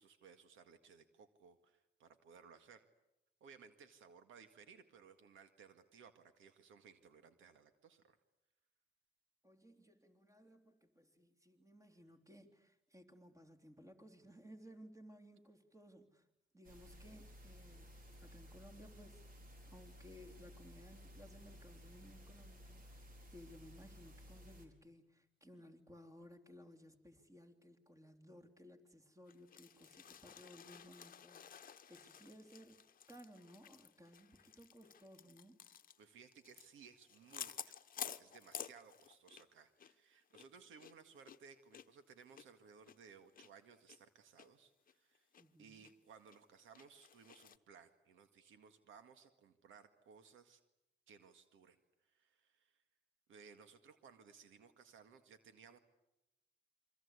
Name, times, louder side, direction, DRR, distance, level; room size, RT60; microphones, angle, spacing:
voice 1, 0.0-2.8 3.4-8.2 36.0-37.8 38.2-45.3 45.6-50.6 51.1-51.8 52.0-52.8 53.3-55.8, right 6 dB, 80° right, 9 dB, 2.0 m, -61 dB
voice 2, 9.4-16.3 16.5-19.2 19.7-32.8 33.1-35.6 45.4-45.9, equal, 15° right, 6 dB, 3.4 m, -59 dB
sound 1, 16.6-24.7, equal, 45° right, 4.8 m, -57 dB
sound 2, 29.3-39.5 39.8-39.9 40.3-43.5 43.9-44.0 44.4-44.5 44.9-45.4 45.8-45.9 46.3-47.6, left 8 dB, 45° left, 1.1 m, -52 dB
27.5 x 24.0 x 8.4 m, 0.92 s
cardioid pair, 90°, 20 cm